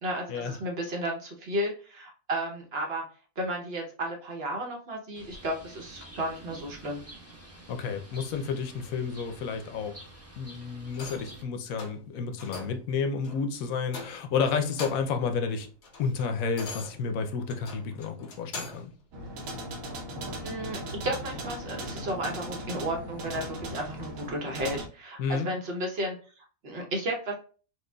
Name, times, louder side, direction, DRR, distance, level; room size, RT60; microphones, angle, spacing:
voice 1, 0.0-3.0 3.4-7.1 20.4-27.3, right 1 dB, 50° right, 1.0 m, -33 dB
Bird, 5.2-11.4, right 1 dB, 15° right, 0.7 m, -49 dB
voice 2, 7.7-9.9 10.4-15.7 16.0-18.9 25.2-25.5, left 5 dB, 80° left, 1.1 m, -31 dB
sound 1, 10.9-11.4 11.8-12.0 12.4-12.8 13.2-13.4 13.9-14.4 14.7-15.2 15.6-18.9 19.4-19.6, left 3 dB, 60° left, 1.1 m, -42 dB
sound 2, 19.1-24.9, equal, 80° right, 1.2 m, -38 dB
4.5 x 2.4 x 2.2 m
omnidirectional pair, 1.4 m